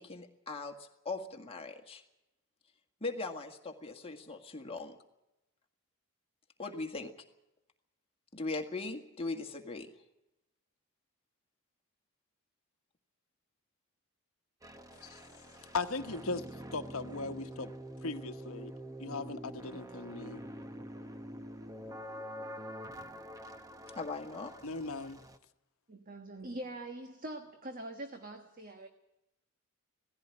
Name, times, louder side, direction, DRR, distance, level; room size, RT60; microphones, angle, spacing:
voice 1, 0.0-2.0 3.0-5.0 6.6-7.1 8.3-9.9 23.9-24.5, left 3 dB, 25° left, 1.8 m, -39 dB
sound 1, 14.6-25.4, equal, 15° right, 1.0 m, -46 dB
voice 2, 15.7-16.4 16.7-17.7 18.0-18.7 19.0-20.4 24.6-25.2, left 3 dB, 70° left, 1.1 m, -38 dB
voice 3, 25.9-28.9, right 1 dB, 40° right, 1.3 m, -43 dB
18.0 x 15.5 x 9.5 m
head